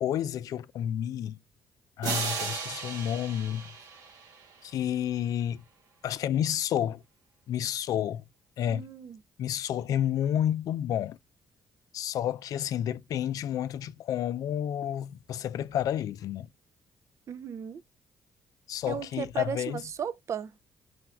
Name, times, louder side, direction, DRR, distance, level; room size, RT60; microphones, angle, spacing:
voice 1, 0.0-1.4 2.0-3.7 4.6-5.6 6.0-7.0 7.5-8.2 8.6-8.9 9.4-11.2 11.9-16.5 18.7-19.8, left 10 dB, 70° left, 0.4 m, -30 dB
sound 1, 2.0-4.7, right 5 dB, 80° right, 0.9 m, -35 dB
voice 2, 8.7-9.2 17.3-17.8 18.9-20.5, right 7 dB, 50° right, 0.4 m, -36 dB
5.0 x 2.3 x 4.3 m
cardioid pair, 75°, 6 cm